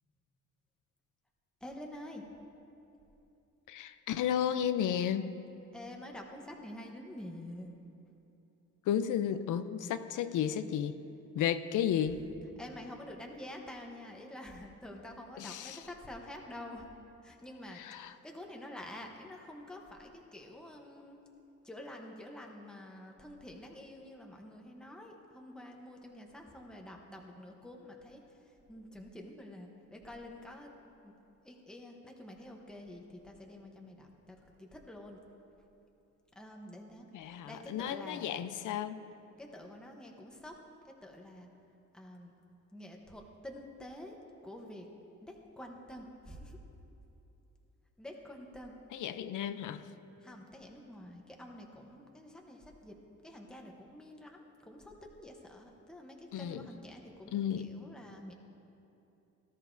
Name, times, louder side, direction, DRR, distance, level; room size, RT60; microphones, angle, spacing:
voice 1, 1.6-2.2 5.7-7.8 11.7-11.8 12.2-12.3 12.6-16.9 17.2-21.2 21.6-30.7 31.0-31.1 31.4-35.2 36.3-38.3 39.4-40.6 40.8-41.5 41.9-42.3 42.7-44.2 44.4-44.9 45.2-46.6 48.0-48.8 50.2-53.0 53.2-58.3, left 1 dB, 5° left, 1 dB, 0.9 m, -48 dB
voice 2, 3.7-5.3 8.9-11.0 11.3-12.2 15.4-15.8 17.8-18.1 37.1-39.0 48.9-49.8 56.3-56.7 57.3-57.7, left 9 dB, 80° left, 11 dB, 0.6 m, -33 dB
18.0 x 13.0 x 2.6 m, 2.9 s
wide cardioid pair, 175°, 30 cm